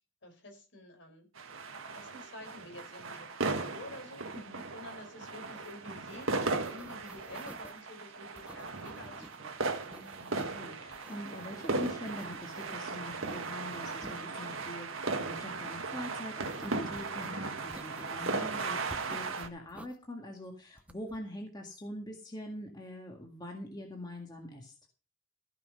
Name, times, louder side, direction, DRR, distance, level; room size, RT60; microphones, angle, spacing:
voice 1, 0.2-1.3 1.9-4.2 4.7-9.6, left 1 dB, 60° left, 4 dB, 4.6 m, -50 dB
sound 1, 1.4-19.5, right 3 dB, 85° right, 1.6 m, -37 dB
sound 2, 5.6-5.7 6.0-7.8 8.4-9.4 9.7-10.6 10.9-12.8 13.1-14.2 16.4-17.3 17.7-18.5 18.9-20.0 20.8-21.2, right 1 dB, 5° right, 0.7 m, -51 dB
voice 2, 9.9-24.7, left 1 dB, 20° left, 1 dB, 1.8 m, -44 dB
15.0 x 5.8 x 5.5 m, 0.35 s
head